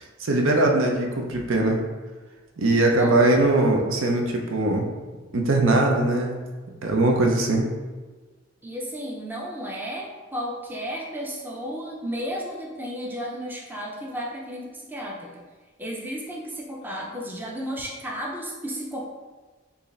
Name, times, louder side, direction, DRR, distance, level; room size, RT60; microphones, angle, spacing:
voice 1, 0.2-1.8 2.6-4.9 5.3-6.5 6.8-7.7, right 2 dB, 85° right, 1 dB, 0.6 m, -21 dB
voice 2, 2.8-3.3 8.6-15.4 15.8-19.1, equal, 10° right, -2 dB, 0.5 m, -33 dB
4.6 x 2.7 x 3.2 m, 1.3 s
head